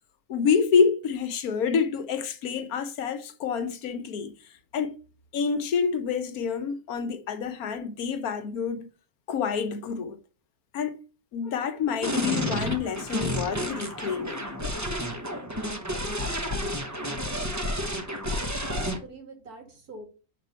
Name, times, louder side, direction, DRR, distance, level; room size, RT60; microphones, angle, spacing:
voice 1, 0.3-4.3 4.7-4.9 5.3-8.9 9.3-10.2 10.7-11.0 11.3-14.5, left 6 dB, 80° left, 1.4 m, -27 dB
sound 1, 12.0-19.0, equal, 15° right, 1.0 m, -30 dB
voice 2, 17.8-18.1 18.6-20.0, right 3 dB, 90° right, 3.0 m, -43 dB
6.2 x 4.8 x 5.6 m
omnidirectional pair, 1.6 m